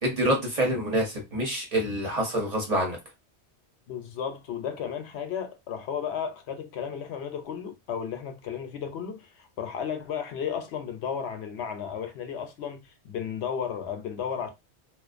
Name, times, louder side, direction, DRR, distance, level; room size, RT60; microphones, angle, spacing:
voice 1, 0.0-3.0, right 1 dB, 40° right, 0.7 m, -26 dB
voice 2, 3.9-14.5, left 7 dB, 75° left, 0.8 m, -34 dB
2.4 x 2.1 x 2.4 m
omnidirectional pair, 1.1 m